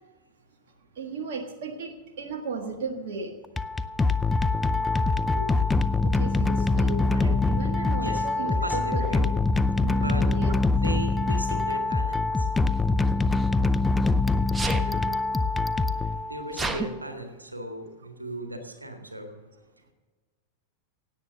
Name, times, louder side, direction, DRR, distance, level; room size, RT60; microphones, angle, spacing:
voice 1, 1.0-3.3 4.8-5.0 5.3-5.5 6.0-9.3 9.8-10.5 14.7-15.2, right 4 dB, 55° right, 3 dB, 1.5 m, -36 dB
sound 1, 3.4-16.6, left 3 dB, 10° left, 0.5 m, -24 dB
voice 2, 7.9-9.2 10.0-10.3 10.8-12.5 16.3-19.3, right 1 dB, 85° right, 5 dB, 1.9 m, -36 dB
Sneeze, 9.0-9.2 10.3-10.6 12.7-14.1 14.5-14.9 15.6-15.7 15.9-16.9, right 2 dB, 10° right, 1.1 m, -33 dB
17.0 x 8.9 x 6.8 m, 1.3 s
figure-of-eight pair, 90°, 0 cm